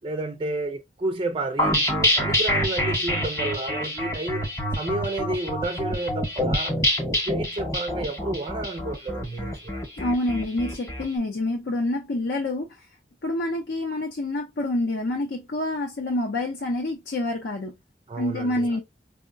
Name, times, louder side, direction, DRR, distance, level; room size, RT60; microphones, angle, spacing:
voice 1, 0.0-6.8 7.2-9.8 18.1-18.8, right 2 dB, 30° right, 0.3 m, -31 dB
sound 1, 1.6-11.0, left 1 dB, 15° left, 0.9 m, -26 dB
voice 2, 10.0-12.9 13.2-17.7 18.2-18.8, left 1 dB, 70° left, 0.6 m, -27 dB
4.5 x 2.1 x 2.5 m
head